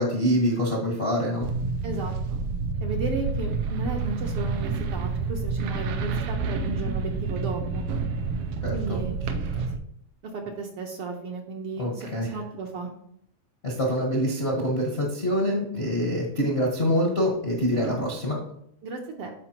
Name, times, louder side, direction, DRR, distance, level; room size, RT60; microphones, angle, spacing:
voice 1, 0.0-1.5 8.6-9.0 9.3-9.6 11.8-12.4 13.6-18.4, equal, 45° left, -3 dB, 0.8 m, -25 dB
sound 1, 1.4-9.8, right 4 dB, 85° right, 1.4 m, -29 dB
voice 2, 1.8-2.4 2.8-7.8 8.7-9.4 10.3-12.9 18.8-19.3, right 3 dB, 65° right, 1 dB, 1.5 m, -34 dB
13.0 x 4.9 x 2.9 m, 0.71 s
omnidirectional pair, 3.3 m